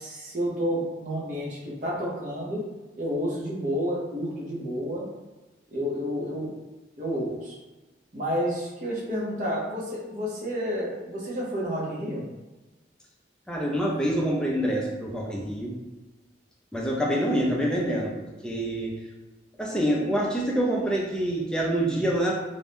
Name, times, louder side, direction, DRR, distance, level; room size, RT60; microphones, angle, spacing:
voice 1, 0.0-2.6 3.0-5.1 5.7-6.5 7.0-7.6 8.1-12.2, equal, 45° right, -5 dB, 0.8 m, -30 dB
voice 2, 13.5-15.8 16.7-18.9 19.6-22.3, right 1 dB, 5° left, -3 dB, 0.4 m, -26 dB
2.6 x 2.2 x 3.4 m, 1.1 s
head